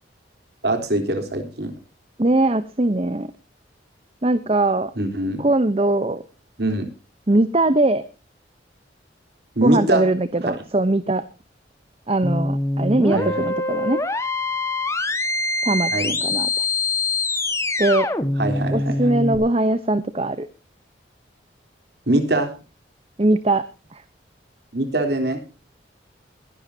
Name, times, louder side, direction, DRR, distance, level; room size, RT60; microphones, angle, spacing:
voice 1, 0.6-1.7 5.0-5.5 6.6-6.9 9.6-10.0 13.1-13.5 15.9-16.1 18.4-19.0 22.1-22.5 24.7-25.4, right 1 dB, 60° right, 6 dB, 3.5 m, -22 dB
voice 2, 2.2-3.3 4.2-4.9 5.4-6.2 7.3-8.0 9.6-11.2 12.1-14.0 15.6-15.9 16.2-16.7 17.8-18.1 18.7-20.5 23.2-23.6 23.9-24.0, right 2 dB, 30° right, 13 dB, 0.8 m, -20 dB
sound 1, 12.2-19.4, left 2 dB, 15° left, 1.4 m, -24 dB
21.0 x 11.5 x 2.7 m, 0.33 s
head